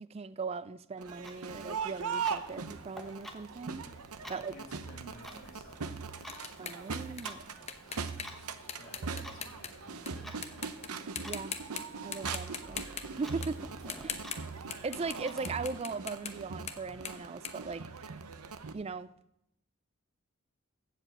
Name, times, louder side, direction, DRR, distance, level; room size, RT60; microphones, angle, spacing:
voice 1, 0.0-3.8 4.3-4.5 6.6-7.5 11.2-11.5 12.0-12.8 13.2-13.7 14.0-14.2 14.8-18.1 18.7-19.1, right 4 dB, 25° right, 0.3 m, -39 dB
Crowd, 1.0-18.7, right 5 dB, 80° right, 0.8 m, -41 dB
Clock, 1.1-15.5, equal, ahead, 1.0 m, -52 dB
voice 2, 4.3-6.0 8.8-10.3 14.0-14.6, equal, 60° left, 2.1 m, -54 dB
sound 1, 5.2-10.1 10.4-10.9 11.2-11.8 12.1-15.2 15.4-18.5, left 7 dB, 30° left, 0.8 m, -42 dB
15.0 x 5.2 x 7.7 m
head